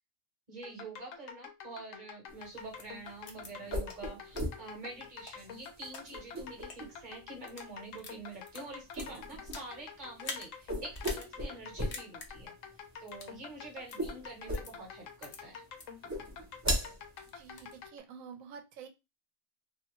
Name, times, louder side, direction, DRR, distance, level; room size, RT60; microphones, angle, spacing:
voice 1, 0.5-12.5 13.0-15.6, right 2 dB, 40° right, -1 dB, 0.9 m, -47 dB
sound 1, 0.6-18.0, left 6 dB, 75° left, 1.0 m, -48 dB
sound 2, 2.3-17.8, equal, 20° right, 0.4 m, -40 dB
sound 3, 2.8-2.9 3.3-3.5 3.9-4.0 4.4-4.5 5.0-6.0 6.6-6.8 7.3-7.7 8.0-9.7 10.2-10.5 10.9-11.3 11.6-11.7 11.9-12.3 13.1-13.3 13.9-14.0 14.5-14.7 15.2-15.4 15.8-15.9 16.3-16.8 17.2-17.7, left 4 dB, 55° left, 0.7 m, -45 dB
voice 2, 17.4-18.9, right 6 dB, 75° right, 7 dB, 1.0 m, -48 dB
2.6 x 2.2 x 2.9 m, 0.24 s
omnidirectional pair, 1.4 m